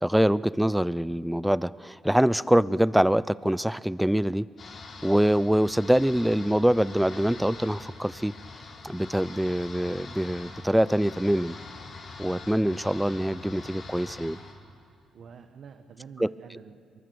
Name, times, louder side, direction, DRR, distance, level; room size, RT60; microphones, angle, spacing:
voice 1, 0.0-4.5 5.0-8.3 8.8-11.6 12.2-14.4 16.2-16.3, equal, 5° right, 19 dB, 0.4 m, -24 dB
sound 1, 4.6-14.5, left 3 dB, 50° left, 4.2 m, -44 dB
voice 2, 15.1-17.0, right 6 dB, 60° right, 7 dB, 1.1 m, -47 dB
24.0 x 22.5 x 7.0 m, 2.6 s
cardioid pair, 90°, 0 cm